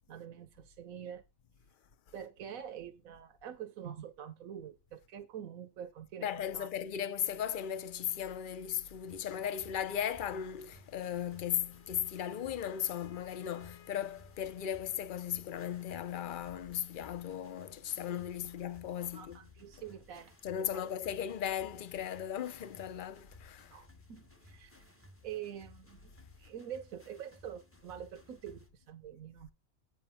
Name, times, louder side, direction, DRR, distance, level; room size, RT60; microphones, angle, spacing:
voice 1, 0.1-1.2 2.1-6.3 6.5-6.7 19.1-20.3 20.7-20.9 23.7-24.9 25.2-29.5, right 9 dB, 85° right, 1.3 m, -46 dB
voice 2, 6.2-19.4 20.4-23.8, left 9 dB, 45° left, 0.7 m, -37 dB
sound 1, 9.1-28.7, left 2 dB, 10° left, 0.9 m, -59 dB
Wind instrument woodwind instrument, 11.3-14.5, left 7 dB, 85° left, 1.5 m, -62 dB
8.7 x 4.9 x 5.7 m
omnidirectional pair, 1.4 m